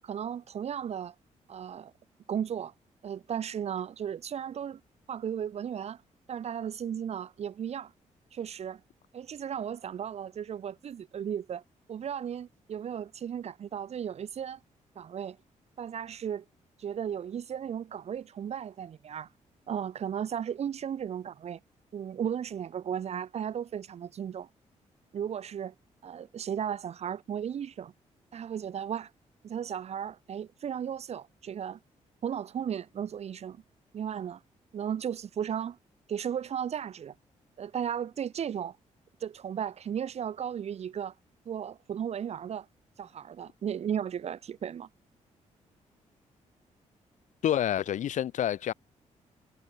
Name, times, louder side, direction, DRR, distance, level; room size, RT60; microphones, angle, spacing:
voice 1, 0.0-1.1 1.5-1.9 2.3-2.7 3.0-4.8 5.1-6.0 6.3-7.9 8.3-8.8 9.1-11.6 11.9-14.6 14.9-15.4 15.8-16.4 16.8-19.3 19.7-21.6 21.9-24.5 25.1-25.7 26.0-27.9 28.3-29.1 29.4-31.8 32.2-33.6 33.9-34.4 34.7-35.8 36.1-37.1 37.6-38.8 39.2-41.1 41.4-42.7 43.0-44.9, right 8 dB, 55° right, 1.3 m, -35 dB
voice 2, 47.4-48.7, left 11 dB, 80° left, 3.0 m, -28 dB
cardioid pair, 120°, 13 cm